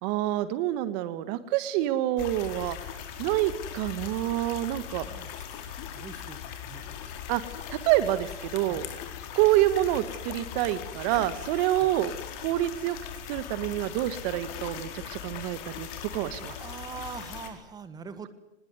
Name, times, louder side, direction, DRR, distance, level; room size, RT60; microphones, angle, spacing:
voice 1, 0.0-2.8 3.2-5.0 7.3-7.4 7.7-8.8 9.3-12.1 12.4-13.0 13.3-15.9 16.1-16.5, right 14 dB, 35° right, 14 dB, 1.5 m, -27 dB
sound 1, 2.2-17.5, left 9 dB, 40° left, 4.4 m, -40 dB
voice 2, 5.0-5.3 5.9-7.1 8.7-8.8 11.8-11.9 16.2-18.3, right 6 dB, 10° right, 12 dB, 1.6 m, -43 dB
24.5 x 20.5 x 9.6 m, 0.86 s
hypercardioid pair, 135°, 36 cm